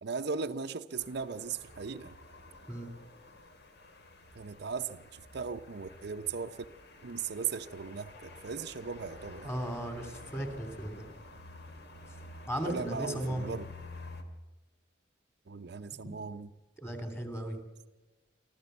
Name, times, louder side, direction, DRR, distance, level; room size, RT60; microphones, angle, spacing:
voice 1, 0.0-2.2 4.3-6.7 7.0-9.5 12.6-13.7 15.5-16.5, right 5 dB, 60° right, 9 dB, 0.6 m, -38 dB
sound 1, 1.0-14.2, left 2 dB, 65° left, 2.4 m, -50 dB
voice 2, 9.4-11.0 12.5-13.5 16.8-17.6, right 1 dB, 15° left, 7 dB, 3.1 m, -36 dB
24.5 x 14.5 x 8.1 m, 1.2 s
head